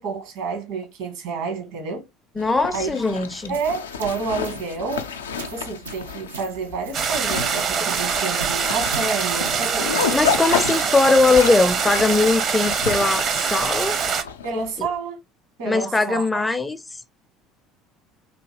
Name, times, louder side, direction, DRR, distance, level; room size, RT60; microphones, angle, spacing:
voice 1, 0.0-2.0 2.7-2.9 3.5-5.1 5.5-10.3 14.4-15.2 15.6-16.3, right 4 dB, 65° right, 1.4 m, -29 dB
Zipper (clothing), 2.4-14.9, left 6 dB, 80° left, 0.4 m, -31 dB
voice 2, 2.4-3.6 10.1-14.0 14.8-14.9 15.7-17.0, left 3 dB, 15° left, 0.4 m, -20 dB
sound 1, 3.3-10.5, right 4 dB, 80° right, 0.5 m, -40 dB
sound 2, 6.9-14.2, right 6 dB, 45° right, 0.7 m, -24 dB
3.5 x 2.7 x 2.8 m
figure-of-eight pair, 65°, 0 cm